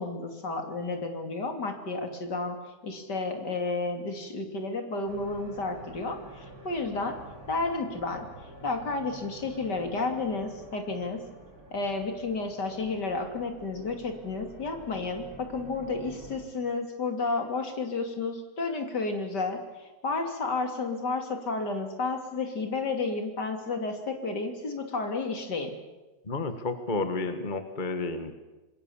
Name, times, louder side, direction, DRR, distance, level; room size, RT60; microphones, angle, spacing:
voice 1, 0.0-2.6 2.8-7.2 7.5-8.3 8.6-11.2 11.7-25.7, left 3 dB, 60° left, 5 dB, 3.4 m, -31 dB
sound 1, 5.1-16.4, right 1 dB, 50° right, 5.5 m, -49 dB
voice 2, 26.3-28.3, left 3 dB, 25° left, 8 dB, 1.6 m, -31 dB
27.0 x 21.0 x 7.2 m, 1.1 s
omnidirectional pair, 2.1 m